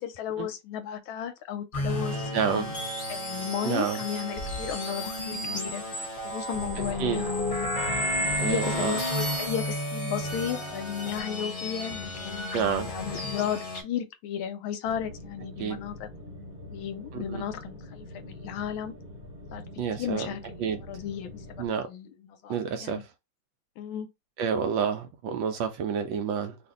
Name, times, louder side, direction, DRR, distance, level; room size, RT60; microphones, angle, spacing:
voice 1, 0.0-2.7 3.1-5.8 6.2-7.3 8.0-12.5 12.9-16.1 16.7-18.9 19.5-19.6 20.0-20.6 20.9-23.0 23.8-24.1, left 9 dB, 75° left, 1.3 m, -34 dB
sound 1, 1.7-13.8, left 1 dB, 35° left, 0.8 m, -32 dB
voice 2, 2.3-2.7 3.6-4.0 6.8-7.3 8.4-9.0 12.5-12.9 15.6-15.8 17.1-17.4 19.8-20.3 20.6-20.8 21.6-21.9 22.5-23.1 24.4-26.6, right 7 dB, 75° right, 1.2 m, -29 dB
sound 2, 14.8-21.7, left 1 dB, 30° right, 1.0 m, -44 dB
3.2 x 2.5 x 3.7 m
omnidirectional pair, 2.4 m